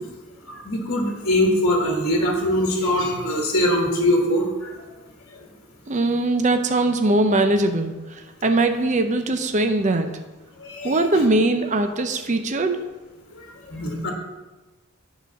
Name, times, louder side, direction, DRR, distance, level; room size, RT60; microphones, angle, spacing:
voice 1, 0.6-4.7 10.6-11.3 13.7-14.1, left 1 dB, 50° left, 0 dB, 1.4 m, -22 dB
voice 2, 5.9-7.9 8.4-10.1 10.8-12.9, right 2 dB, 35° right, 7 dB, 0.6 m, -21 dB
9.3 x 5.0 x 6.3 m, 1.2 s
head